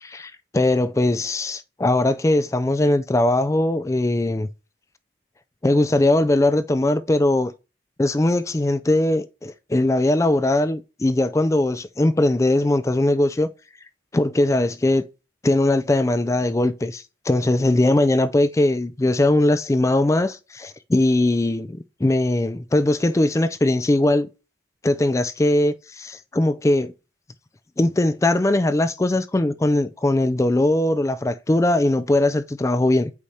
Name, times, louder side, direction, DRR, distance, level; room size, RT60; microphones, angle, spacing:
voice 1, 0.0-4.5 5.6-7.5 8.0-13.5 14.1-15.0 15.4-24.3 24.8-26.9 27.8-33.1, left 1 dB, 15° left, 0.3 m, -20 dB
8.3 x 4.9 x 2.8 m
head